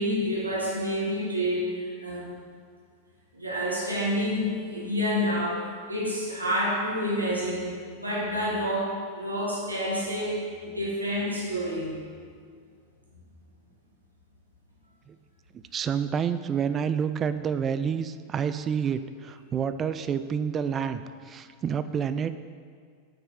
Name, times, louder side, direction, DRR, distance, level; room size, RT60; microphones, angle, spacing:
voice 1, 0.0-2.2 3.3-7.7 7.9-11.9, equal, 85° right, -5 dB, 1.7 m, -28 dB
voice 2, 15.7-22.3, right 7 dB, 25° right, 11 dB, 0.3 m, -28 dB
6.3 x 4.7 x 6.3 m, 2.1 s
figure-of-eight pair, 90°, 0 cm